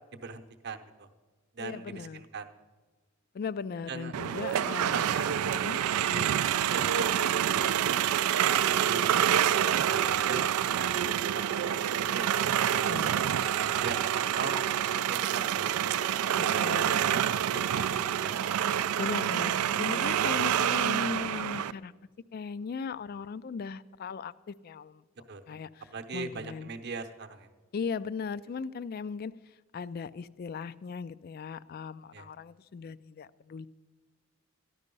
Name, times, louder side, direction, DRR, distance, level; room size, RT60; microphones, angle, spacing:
voice 1, 0.1-1.1 1.5-2.5 3.9-4.1 4.5-5.3 5.6-5.7 6.7-8.2 8.7-10.9 11.3-14.6 14.9-15.7 16.7-18.6 25.3-25.6 25.9-27.5 32.1-32.3, right 4 dB, 50° right, 7 dB, 0.8 m, -40 dB
voice 2, 1.6-2.2 3.3-5.2 5.6-5.8 6.1-6.4 12.9-13.2 16.3-17.2 19.0-21.9 22.3-25.0 25.5-26.7 27.7-33.7, left 5 dB, 45° left, 18 dB, 0.3 m, -38 dB
sound 1, 4.1-21.7, right 10 dB, 80° right, 0.3 m, -27 dB
13.5 x 11.0 x 5.3 m, 1.3 s
head